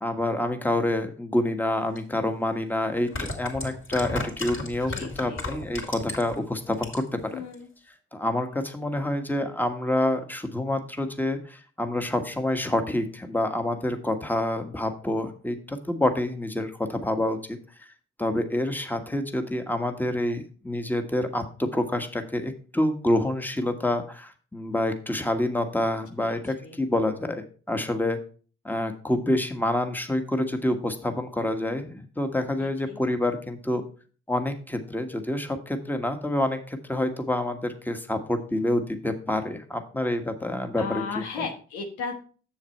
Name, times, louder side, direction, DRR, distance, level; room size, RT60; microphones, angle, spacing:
voice 1, 0.0-7.4 8.1-17.6 18.2-28.2 28.6-33.8 34.3-41.2, left 1 dB, 5° left, 7 dB, 1.5 m, -27 dB
sound 1, 2.0-2.1 2.9-6.4 6.7-7.2 7.5-7.6, left 2 dB, 45° left, 3.4 m, -33 dB
voice 2, 4.9-5.5 7.3-7.7 26.2-26.8 32.6-33.0 40.8-42.2, left 5 dB, 90° left, 3 dB, 1.3 m, -36 dB
7.2 x 6.8 x 4.5 m, 0.40 s
supercardioid pair, 50°, 29 cm